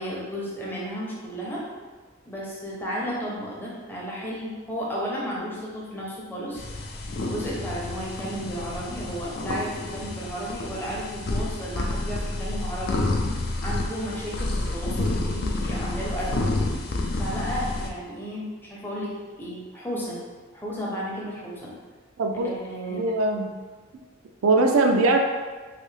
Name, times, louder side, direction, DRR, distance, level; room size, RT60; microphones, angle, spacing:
voice 1, 0.0-1.6 2.2-6.6 7.2-13.0 13.6-16.5 17.2-19.1 19.4-20.2 20.5-21.7 22.4-23.0, equal, 10° left, -5 dB, 0.6 m, -33 dB
sound 1, 6.6-17.9, left 2 dB, 50° left, 0.4 m, -29 dB
voice 2, 22.2-22.5 22.9-23.5 24.4-25.2, right 2 dB, 75° right, 3 dB, 0.4 m, -21 dB
3.3 x 2.6 x 3.2 m, 1.4 s
head